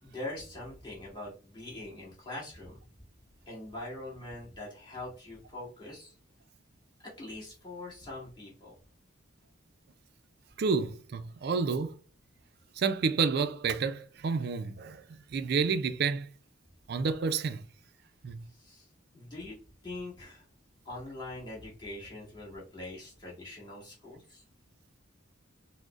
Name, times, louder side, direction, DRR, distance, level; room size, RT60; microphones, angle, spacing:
voice 1, 0.0-2.8 3.5-6.1 7.2-8.7 18.5-18.9 19.1-19.5 19.8-20.5 20.8-24.4, left 2 dB, 25° left, 1.7 m, -43 dB
voice 2, 10.6-12.0 12.8-16.3 16.9-17.6 18.2-18.4, right 5 dB, 55° right, 0.4 m, -30 dB
6.1 x 2.1 x 2.4 m
head